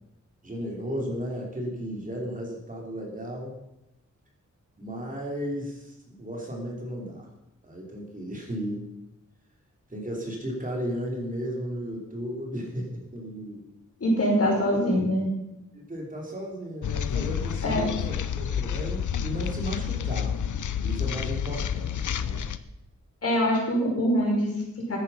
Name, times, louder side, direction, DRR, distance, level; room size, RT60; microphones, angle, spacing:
voice 1, 0.4-3.5 4.8-7.3 7.6-8.9 9.9-13.7 15.7-20.4 20.8-22.5, equal, 25° right, -1 dB, 3.2 m, -34 dB
voice 2, 14.0-15.3 17.6-17.9 23.2-25.0, equal, 55° left, -2 dB, 5.5 m, -24 dB
sound 1, 16.8-22.6, left 8 dB, 85° left, 0.8 m, -29 dB
14.5 x 10.0 x 5.6 m, 0.90 s
wide cardioid pair, 155°, 30 cm